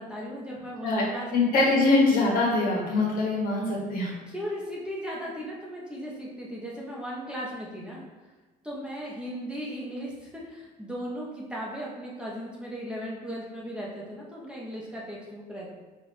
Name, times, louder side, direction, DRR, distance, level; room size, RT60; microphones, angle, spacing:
voice 1, 0.0-1.3 4.3-8.0 8.6-15.7, equal, 5° right, -5 dB, 0.9 m, -37 dB
voice 2, 1.3-4.1, left 3 dB, 60° left, -3 dB, 1.3 m, -23 dB
4.8 x 2.5 x 3.3 m, 1.3 s
cardioid pair, 110°, 17 cm